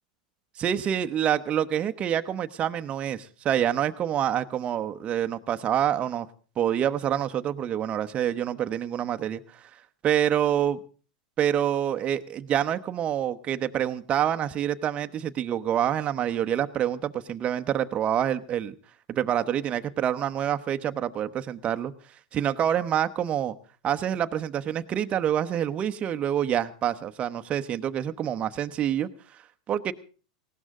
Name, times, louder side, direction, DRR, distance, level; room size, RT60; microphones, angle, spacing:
voice 1, 0.6-6.3 6.6-9.7 10.0-10.8 11.4-18.7 19.1-21.9 22.3-23.5 23.8-29.1 29.7-29.9, right 10 dB, 35° right, 9 dB, 1.0 m, -27 dB
19.0 x 17.0 x 3.7 m, 0.37 s
hypercardioid pair, 110°, 4 cm